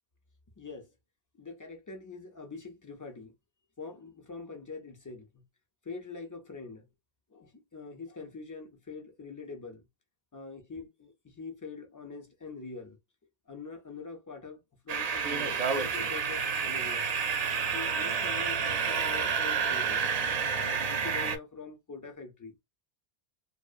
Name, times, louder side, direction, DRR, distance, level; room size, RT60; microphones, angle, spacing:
voice 1, 0.6-0.9 1.4-3.3 3.8-5.4 5.8-6.9 7.3-9.8 10.3-13.0 13.5-14.6 14.8-17.1 17.7-20.0 20.5-22.6, left 4 dB, 35° left, 0.3 m, -44 dB
sound 1, 14.9-21.4, right 6 dB, 55° right, 0.4 m, -29 dB
2.6 x 2.0 x 2.3 m
omnidirectional pair, 1.1 m